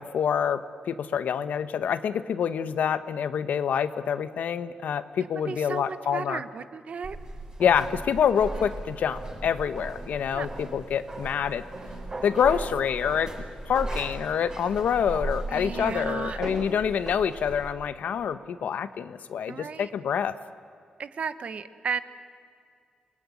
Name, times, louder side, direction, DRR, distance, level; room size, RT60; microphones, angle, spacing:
voice 1, 0.0-6.4 7.6-11.6 12.2-13.3 13.6-20.4, left 8 dB, 80° left, 12 dB, 1.1 m, -26 dB
voice 2, 5.5-7.2 10.3-10.5 15.5-16.4 19.5-19.9 21.0-22.0, right 6 dB, 55° right, 12 dB, 1.1 m, -34 dB
sound 1, 7.0-17.7, right 1 dB, 30° right, 5.6 m, -37 dB
27.0 x 19.5 x 9.7 m, 2.3 s
wide cardioid pair, 125°, 3 cm